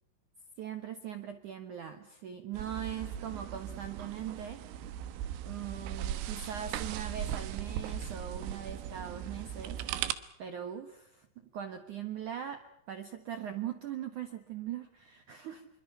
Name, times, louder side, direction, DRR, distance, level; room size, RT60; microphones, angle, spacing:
voice 1, 0.6-4.8 5.4-9.8 10.4-11.3 11.5-12.6 12.9-15.7, right 9 dB, 65° right, 8 dB, 2.0 m, -40 dB
sound 1, 2.5-10.1, right 10 dB, 90° right, 3.9 m, -38 dB
27.5 x 24.5 x 5.8 m, 0.76 s
omnidirectional pair, 5.6 m